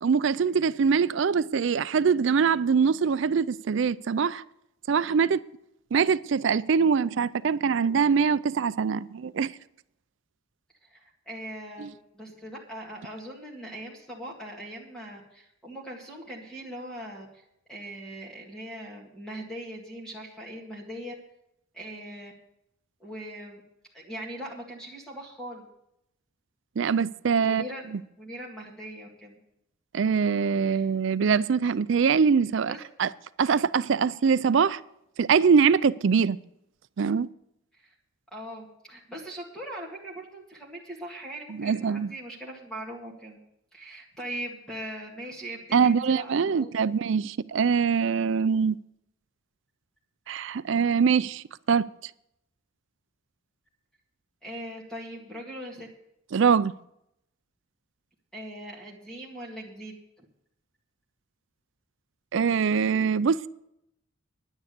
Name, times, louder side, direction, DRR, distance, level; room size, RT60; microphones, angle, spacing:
voice 1, 0.0-4.4 4.9-5.4 5.9-9.5 11.8-11.9 26.8-27.6 29.9-33.1 33.4-34.8 35.2-36.4 37.0-37.3 41.5-42.1 45.7-48.8 50.3-51.8 56.3-56.7 62.3-63.5, right 6 dB, 60° right, 0.4 m, -23 dB
voice 2, 10.8-17.3 17.7-21.1 21.7-22.3 23.0-23.6 23.9-25.7 27.4-27.9 28.2-29.4 30.6-30.9 32.7-32.8 37.7-37.9 38.3-43.4 43.7-46.7 54.4-55.9 58.3-60.3, right 1 dB, 5° left, 1.9 m, -40 dB
10.5 x 9.6 x 6.7 m
head